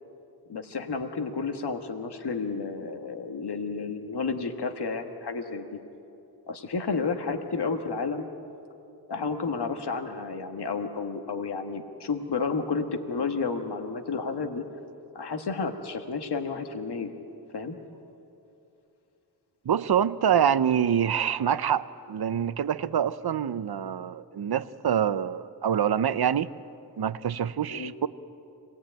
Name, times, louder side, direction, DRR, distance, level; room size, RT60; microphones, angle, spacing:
voice 1, 0.5-5.8 6.5-8.3 9.1-14.6 15.1-17.1 17.5-17.8 27.7-27.9, left 4 dB, 70° left, 5 dB, 1.6 m, -31 dB
voice 2, 19.6-26.5 27.0-28.1, right 8 dB, 65° right, 15 dB, 0.7 m, -26 dB
26.0 x 18.0 x 8.9 m, 2.8 s
wide cardioid pair, 110°, 41 cm